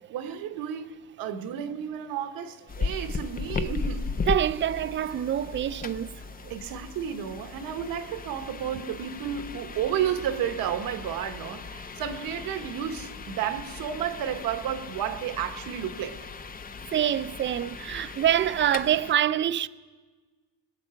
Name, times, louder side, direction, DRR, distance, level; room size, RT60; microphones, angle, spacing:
voice 1, 0.1-4.1 5.0-5.3 6.5-16.3, right 9 dB, 85° right, 1.1 m, -32 dB
sound 1, 2.7-19.2, left 4 dB, 25° left, 0.6 m, -37 dB
voice 2, 4.3-6.1 6.4-6.5 16.9-19.7, right 10 dB, 35° right, 0.4 m, -25 dB
21.5 x 8.4 x 5.7 m
cardioid pair, 105°, 34 cm